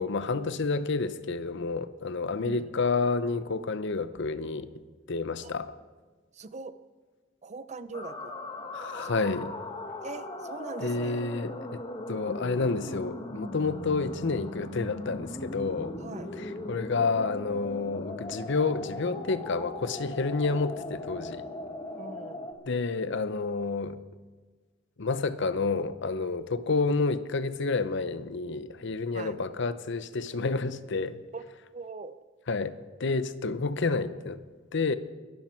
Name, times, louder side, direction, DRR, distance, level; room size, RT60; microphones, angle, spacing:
voice 1, 0.0-4.7 5.1-5.7 8.7-9.5 10.8-11.8 12.1-16.0 16.4-21.4 22.7-24.0 25.0-31.2 32.5-34.4 34.7-34.9, left 4 dB, 65° left, 13 dB, 0.7 m, -29 dB
voice 2, 2.4-2.8 5.4-5.5 6.3-6.7 7.4-8.3 9.0-9.3 10.0-11.2 16.0-16.3 22.0-22.5 26.7-26.8 29.1-29.4 31.3-31.4 31.7-32.1, right 3 dB, 35° right, 13 dB, 0.6 m, -41 dB
sound 1, 7.9-22.5, left 1 dB, 25° left, 1.3 m, -39 dB
22.0 x 12.0 x 4.5 m, 1.3 s
head